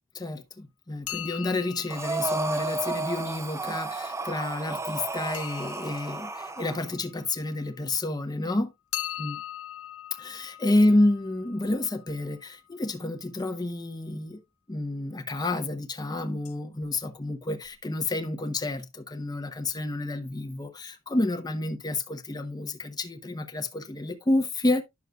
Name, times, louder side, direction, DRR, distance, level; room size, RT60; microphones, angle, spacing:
voice 1, 0.1-8.7 9.2-9.4 10.2-14.4 14.7-24.8, left 2 dB, 20° left, 0.8 m, -29 dB
sound 1, 1.0-3.8 5.3-8.0 8.9-12.7 16.2-16.5 16.8-16.9 17.6-17.7 18.0-18.1, left 12 dB, 90° left, 0.6 m, -41 dB
Breathing, 1.9-6.8, right 2 dB, 15° right, 0.6 m, -32 dB
10.5 x 6.5 x 2.3 m
head